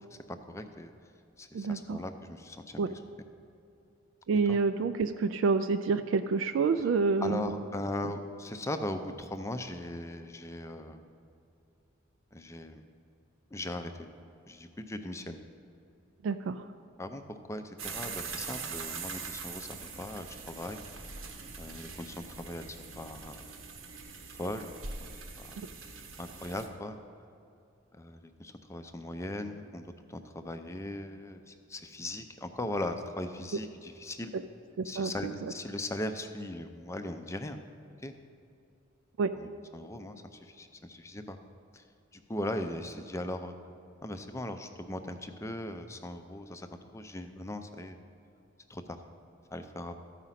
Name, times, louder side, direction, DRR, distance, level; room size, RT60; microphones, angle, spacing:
voice 1, 0.5-0.9 1.4-3.0 4.5-4.6 7.2-11.1 12.3-12.8 13.5-13.9 14.5-15.4 17.0-20.8 21.6-23.5 24.3-24.7 25.0-25.1 25.4-25.6 26.2-27.0 27.9-34.3 34.8-37.6 38.0-38.1 39.3-41.4 41.7-41.8 42.3-43.5 44.0-46.7 46.9-48.0 48.7-49.0 49.5-49.9, left 1 dB, 15° left, 8 dB, 0.5 m, -39 dB
voice 2, 1.5-2.0 2.8-2.9 4.3-7.5 16.2-16.7 34.3-34.4 34.8-35.1 39.2-39.3, right 4 dB, 65° right, 9 dB, 0.3 m, -28 dB
sound 1, 17.8-26.7, right 5 dB, 80° right, 1.0 m, -42 dB
13.5 x 5.0 x 5.7 m, 2.6 s
head